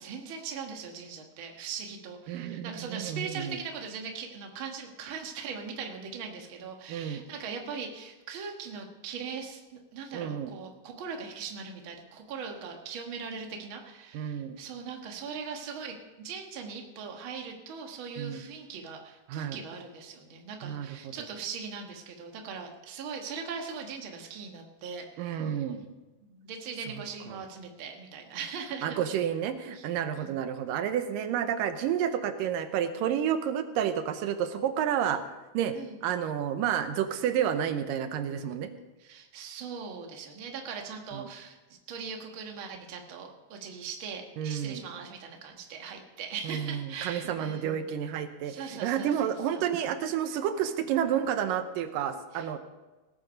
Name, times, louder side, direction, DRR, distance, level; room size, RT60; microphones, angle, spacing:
voice 1, 0.0-25.6 26.3-29.0 29.7-29.9 30.2-30.4 35.7-36.0 39.0-41.6 41.9-47.9 48.4-49.2 49.5-49.6 52.3-52.6, right 5 dB, 50° right, 3 dB, 1.8 m, -40 dB
voice 2, 2.3-3.6 6.9-7.2 10.1-10.5 14.1-14.6 18.2-18.5 19.3-19.6 20.6-21.0 25.2-25.8 27.3-27.4 28.8-35.2 35.5-35.8 36.0-38.7 41.1-41.3 44.4-44.8 46.5-48.5 48.8-52.6, right 9 dB, 90° right, 9 dB, 2.5 m, -30 dB
18.5 x 8.8 x 5.2 m, 1.1 s
omnidirectional pair, 3.8 m